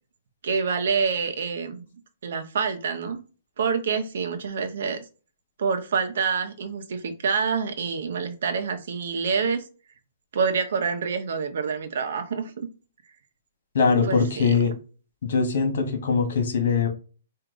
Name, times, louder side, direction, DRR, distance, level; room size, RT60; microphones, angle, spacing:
voice 1, 0.4-1.8 2.2-3.2 3.6-5.0 5.6-9.6 10.3-12.7 14.0-14.6, right 5 dB, 60° right, 6 dB, 0.9 m, -27 dB
voice 2, 13.7-14.7 15.2-16.9, left 5 dB, 60° left, 6 dB, 1.7 m, -22 dB
4.7 x 2.8 x 3.9 m, 0.35 s
hypercardioid pair, 165°, 0 cm